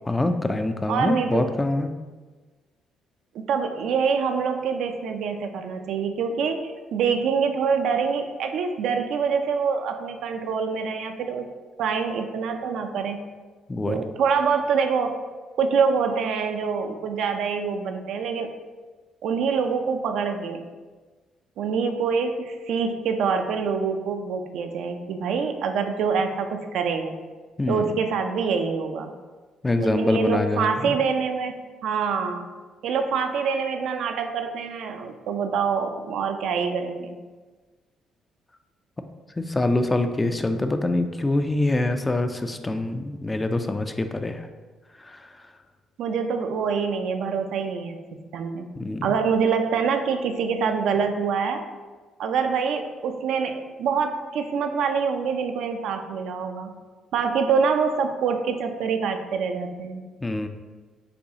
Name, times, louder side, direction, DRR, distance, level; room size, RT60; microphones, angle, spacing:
voice 1, 0.1-1.9 13.7-14.0 27.6-27.9 29.6-31.0 39.4-44.5 45.0-45.4 48.8-49.0 60.2-60.5, left 2 dB, 20° left, 7 dB, 0.4 m, -25 dB
voice 2, 0.9-1.5 3.3-11.5 11.8-13.2 13.9-15.2 15.6-18.5 19.2-20.7 21.6-27.2 27.7-29.1 29.8-31.5 31.8-32.5 32.8-37.1 46.0-48.0 48.3-48.7 49.0-51.6 52.2-56.7 57.1-60.0, right 5 dB, 75° right, 5 dB, 0.4 m, -25 dB
6.6 x 2.3 x 2.8 m, 1.3 s
supercardioid pair, 70°, 0 cm